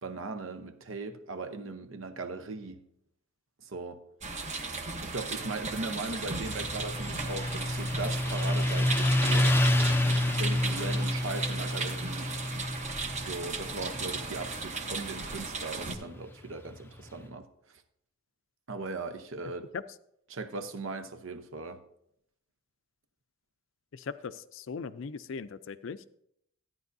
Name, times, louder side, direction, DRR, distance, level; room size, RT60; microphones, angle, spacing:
voice 1, 0.0-2.8 3.6-4.0 5.0-9.9 10.4-12.4 13.2-17.5 18.7-19.7 20.3-21.8, right 3 dB, 70° right, 0.8 m, -38 dB
sound 1, 4.2-15.9, right 4 dB, 35° right, 0.9 m, -36 dB
Motorcycle, 6.1-17.2, left 1 dB, 10° left, 0.5 m, -29 dB
voice 2, 23.9-26.1, left 5 dB, 65° left, 0.4 m, -39 dB
13.5 x 9.6 x 2.7 m
head